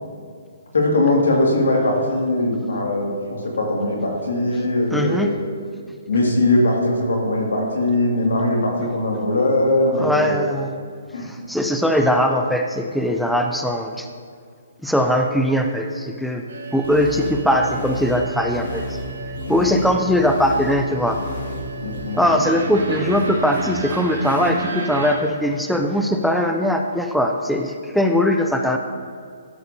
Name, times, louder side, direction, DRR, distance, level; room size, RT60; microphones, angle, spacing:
voice 1, 0.7-5.4 6.1-10.4 11.1-11.3 19.4-19.7 21.8-22.5, left 1 dB, 90° left, 0 dB, 2.0 m, -20 dB
voice 2, 4.9-5.3 9.9-10.7 11.2-14.1 14.8-16.4 16.7-19.0 19.5-21.2 22.2-28.8, equal, ahead, 3 dB, 0.3 m, -20 dB
sound 1, 16.5-25.1, right 2 dB, 75° right, 1.8 m, -32 dB
sound 2, 16.8-22.0, equal, 60° left, 1.9 m, -32 dB
12.5 x 6.6 x 2.7 m, 2.2 s
hypercardioid pair, 155°, 0 cm